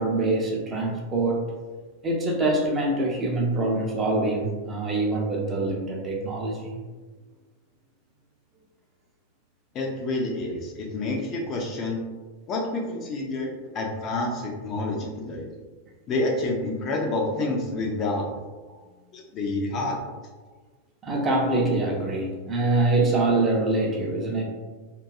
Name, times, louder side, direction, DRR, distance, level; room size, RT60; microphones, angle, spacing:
voice 1, 0.0-1.5 2.0-6.8 21.0-24.4, right 2 dB, 20° right, -2 dB, 0.5 m, -24 dB
voice 2, 9.7-12.0 12.5-15.5 16.1-18.3 19.1-20.0, left 2 dB, 35° left, -1 dB, 0.4 m, -28 dB
2.6 x 2.3 x 2.3 m, 1.3 s
figure-of-eight pair, 90°, 0 cm